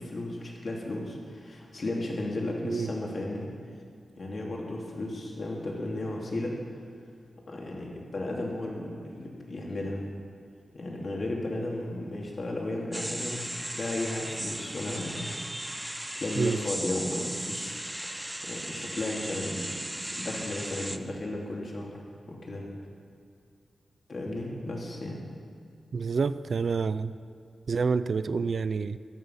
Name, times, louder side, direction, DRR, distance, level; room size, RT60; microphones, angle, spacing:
voice 1, 0.0-3.5 4.2-6.5 7.5-10.1 10.7-15.9 16.1-22.0 22.3-22.6 24.1-25.2, left 1 dB, 45° left, -2 dB, 2.8 m, -34 dB
sound 1, 12.9-21.0, right 1 dB, 10° right, 0.7 m, -36 dB
voice 2, 25.9-27.1 27.7-29.0, right 5 dB, 60° right, 14 dB, 0.4 m, -28 dB
14.0 x 12.5 x 5.7 m, 2.3 s
wide cardioid pair, 110°, 0 cm